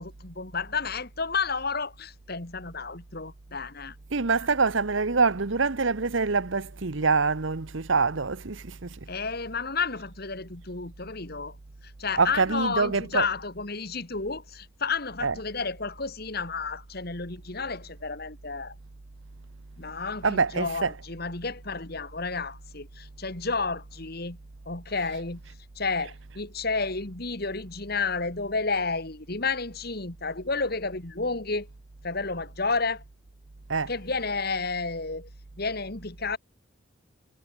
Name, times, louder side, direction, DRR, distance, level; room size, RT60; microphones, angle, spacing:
voice 1, 0.0-4.0 9.1-11.6 11.8-18.7 19.8-24.4 24.7-25.4 25.8-31.7 32.0-33.0 33.9-35.3 35.6-36.4, left 4 dB, 50° left, 2.2 m, -31 dB
voice 2, 4.1-9.0 12.2-13.2 15.2-15.3 20.2-20.9 33.7-33.9, right 4 dB, 65° right, 1.0 m, -25 dB
head